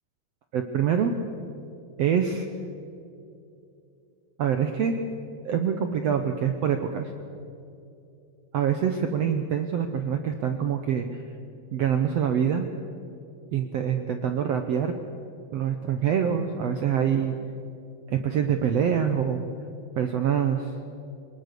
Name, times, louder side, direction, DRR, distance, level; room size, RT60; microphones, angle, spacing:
voice 1, 0.5-1.2 2.0-2.5 4.4-5.0 5.4-7.1 8.5-11.2 11.7-12.7 13.5-14.9 15.5-17.3 18.1-19.4 19.9-20.7, right 8 dB, 70° right, 6 dB, 1.5 m, -25 dB
24.5 x 20.0 x 6.8 m, 2.6 s
omnidirectional pair, 4.2 m